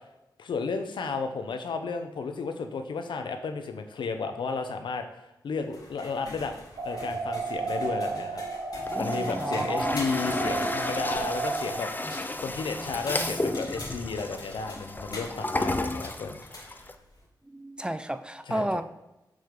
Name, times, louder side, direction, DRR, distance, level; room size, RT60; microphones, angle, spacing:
voice 1, 0.4-6.5 6.8-8.4 9.0-11.9 12.4-16.9 18.5-18.7, left 4 dB, 80° left, 7 dB, 0.8 m, -33 dB
sound 1, 5.6-17.3, left 2 dB, 50° left, 2.4 m, -44 dB
sound 2, 6.8-11.8, right 3 dB, 75° right, 1.4 m, -32 dB
Toilet flush, 8.7-16.9, left 2 dB, 25° left, 0.8 m, -33 dB
voice 2, 9.1-10.0 12.8-12.9 17.4-18.8, right 1 dB, 10° right, 10 dB, 0.6 m, -32 dB
6.8 x 6.3 x 3.8 m, 0.94 s
cardioid pair, 45°, 8 cm